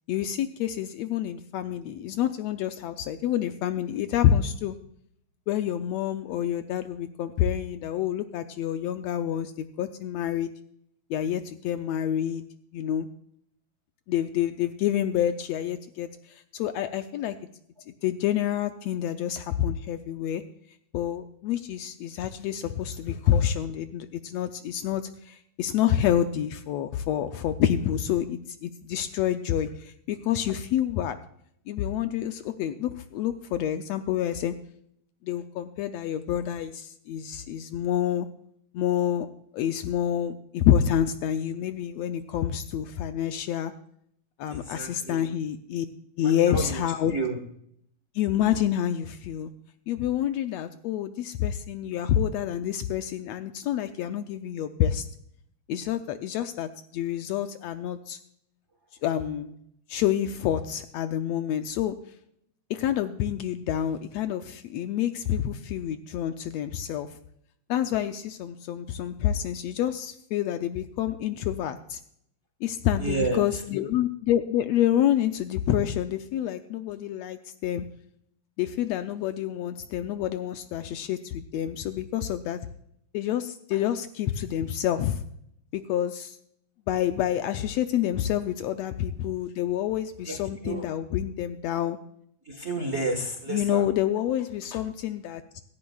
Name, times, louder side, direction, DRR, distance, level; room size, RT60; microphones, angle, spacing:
voice 1, 0.1-4.8 5.5-10.5 11.1-12.4 12.7-13.1 14.1-16.1 16.5-17.4 18.0-20.4 20.9-31.2 31.7-34.5 35.2-38.3 38.7-39.3 39.5-43.7 44.4-45.9 46.2-47.1 48.1-49.5 49.9-55.1 55.7-58.2 59.0-59.6 59.9-62.0 62.7-67.1 67.7-72.0 72.6-77.8 78.6-82.6 83.1-85.2 85.7-86.4 86.9-92.0 93.5-95.6, left 10 dB, 75° left, 8 dB, 1.6 m, -28 dB
voice 2, 44.5-45.3 46.2-46.8 47.1-47.4 73.0-73.6 90.2-90.9 92.4-94.2, right 3 dB, 35° right, 4 dB, 1.1 m, -31 dB
17.0 x 14.0 x 2.3 m, 0.71 s
omnidirectional pair, 3.3 m